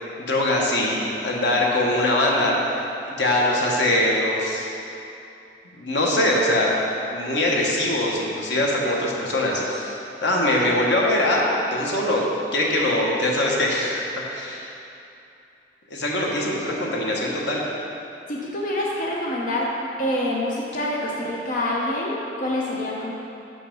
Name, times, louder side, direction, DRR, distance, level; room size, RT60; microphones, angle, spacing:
voice 1, 0.2-4.7 5.7-6.7 7.1-11.5 11.7-12.2 12.5-14.7 15.9-17.6, left 1 dB, 85° left, -3 dB, 1.2 m, -22 dB
voice 2, 18.3-19.7 20.0-23.1, left 1 dB, 50° left, -4 dB, 0.7 m, -26 dB
6.6 x 5.5 x 5.3 m, 2.7 s
head